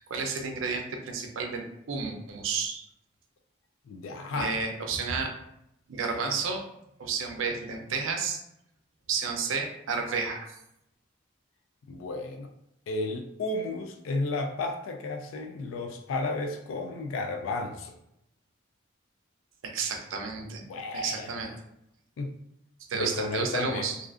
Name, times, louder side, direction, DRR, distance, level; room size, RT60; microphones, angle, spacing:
voice 1, 0.1-2.8 4.3-5.3 5.9-6.6 7.0-8.4 9.1-10.5 19.6-20.6 20.9-21.5 22.9-24.0, right 5 dB, 90° right, 3 dB, 0.4 m, -31 dB
voice 2, 3.9-4.5 11.9-12.5 12.9-18.0 20.6-21.3 22.2-22.3 22.9-23.9, left 2 dB, 90° left, 4 dB, 0.3 m, -33 dB
2.4 x 2.4 x 2.4 m, 0.80 s
head